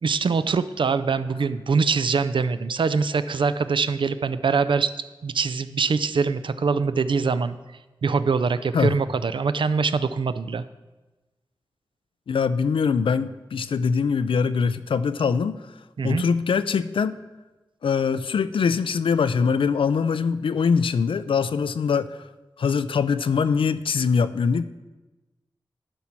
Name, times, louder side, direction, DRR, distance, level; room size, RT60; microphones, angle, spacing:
voice 1, 0.0-4.9 5.2-7.6 8.0-10.6 16.0-16.2, right 5 dB, 70° right, 13 dB, 0.4 m, -23 dB
voice 2, 12.3-15.6 16.0-17.1 17.8-22.1 22.6-24.6, left 5 dB, 90° left, 14 dB, 0.4 m, -23 dB
11.5 x 4.4 x 5.9 m, 1.1 s
wide cardioid pair, 65°, 9 cm